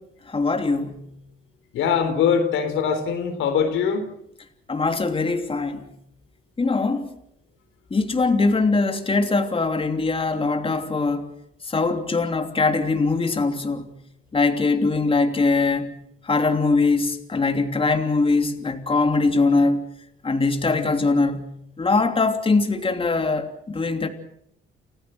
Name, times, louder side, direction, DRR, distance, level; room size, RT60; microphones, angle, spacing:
voice 1, 0.3-1.0 4.7-5.9 6.6-7.1 7.9-11.3 11.7-13.9 14.3-15.9 16.2-19.8 20.2-21.5 21.8-24.1, left 3 dB, 25° left, 6 dB, 3.1 m, -22 dB
voice 2, 1.7-4.1, left 7 dB, 85° left, 7 dB, 4.0 m, -22 dB
30.0 x 15.0 x 7.8 m, 0.74 s
cardioid pair, 90°, 20 cm